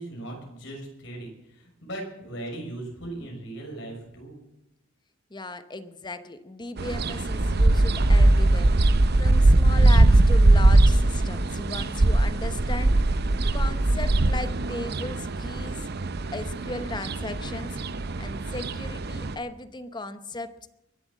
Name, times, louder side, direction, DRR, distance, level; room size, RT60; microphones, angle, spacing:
voice 1, 0.0-4.4, right 1 dB, 65° left, 1 dB, 6.1 m, -38 dB
voice 2, 5.3-8.7 9.2-13.0 13.5-15.8 16.3-17.8 18.2-20.7, left 2 dB, 25° left, 11 dB, 0.9 m, -36 dB
sound 1, 6.8-19.3, right 2 dB, 55° right, 0.7 m, -21 dB
22.0 x 7.8 x 7.5 m, 0.88 s
head